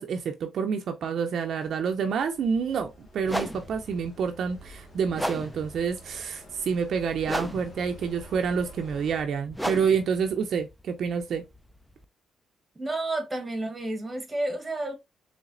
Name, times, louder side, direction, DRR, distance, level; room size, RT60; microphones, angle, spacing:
voice 1, 0.0-11.4, right 6 dB, 65° right, 0.5 m, -28 dB
sound 1, 1.2-9.2, equal, 45° left, 1.0 m, -49 dB
sound 2, 2.4-2.6 3.2-12.0, equal, ahead, 0.4 m, -37 dB
voice 2, 12.7-14.9, right 2 dB, 15° right, 1.3 m, -31 dB
4.0 x 3.3 x 2.5 m
cardioid pair, 90°, 0 cm